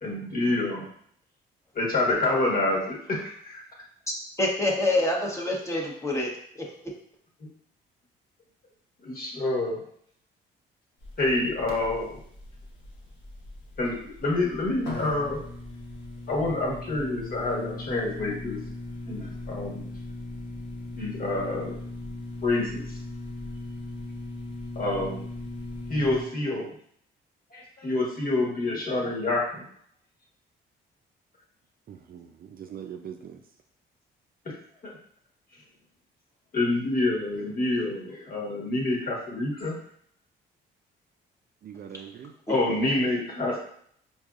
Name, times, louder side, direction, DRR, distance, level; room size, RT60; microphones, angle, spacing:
voice 1, 0.0-0.8 1.7-3.6 9.0-9.8 11.2-12.2 13.8-15.4 16.3-18.6 19.1-19.9 21.0-21.8 22.4-22.8 24.7-25.2 25.9-26.7 27.5-29.6 34.8-34.9 36.5-39.8 42.5-43.6, left 2 dB, 45° left, 1.4 m, -27 dB
voice 2, 4.4-6.9 42.5-42.6, left 2 dB, 15° left, 1.0 m, -27 dB
sound 1, 11.0-26.2, left 2 dB, 85° left, 1.2 m, -39 dB
voice 3, 31.9-33.4 41.6-42.3, right 8 dB, 50° right, 0.4 m, -42 dB
4.6 x 2.7 x 2.4 m
cardioid pair, 90°, 20 cm